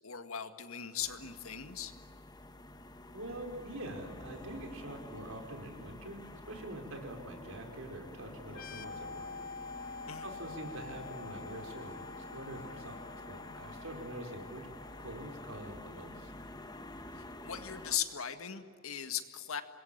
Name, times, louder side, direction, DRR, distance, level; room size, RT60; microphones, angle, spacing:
voice 1, 0.0-1.9 10.1-10.3 17.2-19.6, left 9 dB, 80° left, 8 dB, 1.9 m, -38 dB
sound 1, 1.0-18.0, left 1 dB, 20° left, 1.3 m, -49 dB
voice 2, 3.1-6.2 6.5-9.3 10.2-14.6 15.0-16.3, right 1 dB, 80° right, 3 dB, 5.0 m, -45 dB
sound 2, 8.5-16.0, left 4 dB, 45° left, 0.9 m, -48 dB
26.0 x 21.5 x 8.8 m, 2.2 s
head